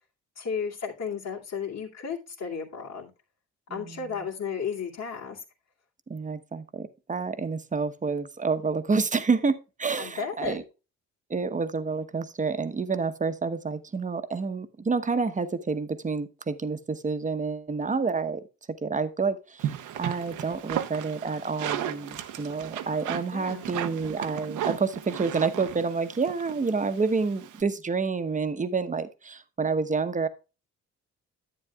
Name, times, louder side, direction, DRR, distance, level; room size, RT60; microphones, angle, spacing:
voice 1, 0.4-3.1 3.7-5.4 10.0-10.6 23.3-23.7, left 6 dB, 60° left, -7 dB, 2.5 m, -33 dB
voice 2, 3.7-4.0 6.1-10.6 11.3-18.4 18.8-30.3, right 4 dB, 25° right, 11 dB, 1.0 m, -29 dB
sound 1, 19.6-27.6, right 10 dB, 80° right, 1.0 m, -35 dB
11.0 x 8.9 x 2.4 m, 0.30 s
cardioid pair, 90°, 30 cm